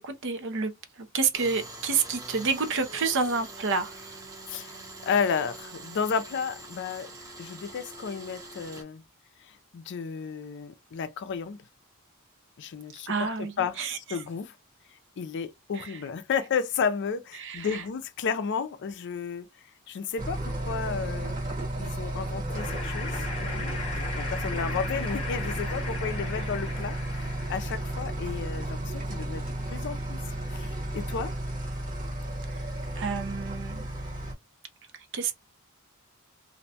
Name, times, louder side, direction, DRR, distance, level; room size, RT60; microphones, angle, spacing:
voice 1, 0.0-4.0 13.1-14.2 15.8-16.0 17.4-17.8 32.5-32.6 33.0-33.9 35.1-35.3, right 4 dB, 60° right, 0.6 m, -29 dB
Tools, 1.3-8.8, right 2 dB, 15° right, 0.7 m, -44 dB
voice 2, 4.5-7.1 7.4-9.0 9.4-11.6 12.6-14.6 15.2-19.5 19.9-21.4 21.8-30.2 30.5-31.3, left 6 dB, 55° left, 0.4 m, -33 dB
sound 1, 20.2-34.3, right 1 dB, 40° right, 1.0 m, -33 dB
sound 2, 22.5-27.9, left 3 dB, 30° left, 0.8 m, -38 dB
2.6 x 2.1 x 2.6 m
head